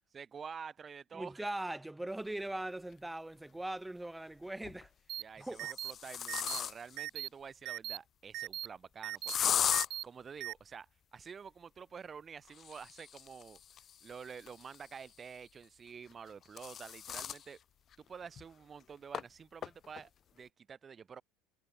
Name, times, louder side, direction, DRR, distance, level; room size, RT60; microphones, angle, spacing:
voice 1, 0.1-1.5 5.2-9.6 10.0-13.6 14.0-17.6 18.0-21.2, right 6 dB, 30° right, 5.3 m, -49 dB
voice 2, 1.1-4.9 5.4-5.7, right 1 dB, 5° right, 2.8 m, -40 dB
sound 1, 2.9-3.0 4.4-4.9 5.4-7.0 9.3-9.9 12.5-15.1 16.1-17.4 17.9-18.0 18.4-18.5 19.1-19.2 19.6-20.0, left 9 dB, 40° left, 2.4 m, -37 dB
sound 2, 5.1-5.2 5.6-5.9 6.3-6.6 7.0-7.3 7.7-8.0 8.3-8.7 9.0-9.4 9.7-10.0 10.4-10.5, right 16 dB, 55° right, 4.0 m, -39 dB
hypercardioid pair, 75°, 0 cm